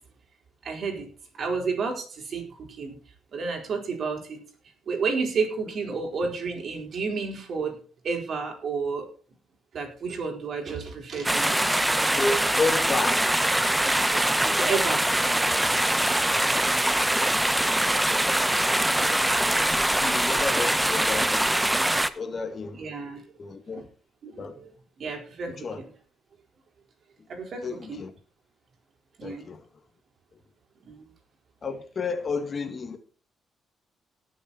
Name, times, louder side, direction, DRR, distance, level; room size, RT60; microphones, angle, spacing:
voice 1, 0.6-1.1 1.3-3.0 3.3-4.4 4.9-7.8 8.0-9.1 9.7-11.6 13.9-16.0 18.7-19.3 22.7-23.2 23.7-23.8 24.2-25.9 27.3-28.0 29.2-29.5 30.8-31.1, right 4 dB, 55° right, 4.6 m, -32 dB
sound 1, 11.2-22.1, right 1 dB, 10° right, 0.9 m, -23 dB
voice 2, 12.2-13.4 16.2-16.5 19.5-21.5 22.0-22.8 23.4-23.9 24.4-24.5 25.5-25.8 27.6-28.1 29.2-29.7 31.6-33.0, left 4 dB, 40° left, 1.9 m, -31 dB
18.0 x 7.1 x 4.3 m
cardioid pair, 90°, 0 cm